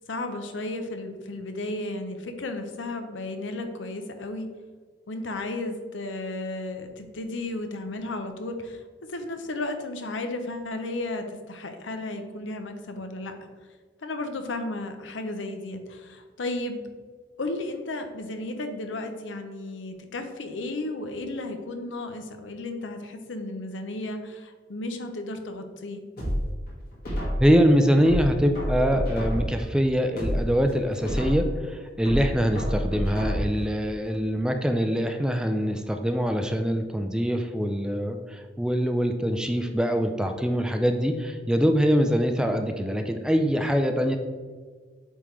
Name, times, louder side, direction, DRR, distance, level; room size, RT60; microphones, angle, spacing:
voice 1, 0.1-4.5 5.1-8.8 9.1-13.5 14.0-16.8 17.4-26.0, left 2 dB, 85° left, 6 dB, 0.7 m, -34 dB
sound 1, 26.2-27.6 28.1-29.7 30.1-31.6 32.1-33.7 34.1-34.2, equal, 55° left, 1.8 m, -29 dB
voice 2, 27.4-44.2, equal, 5° right, 5 dB, 0.3 m, -24 dB
8.5 x 3.6 x 3.2 m, 1.5 s
head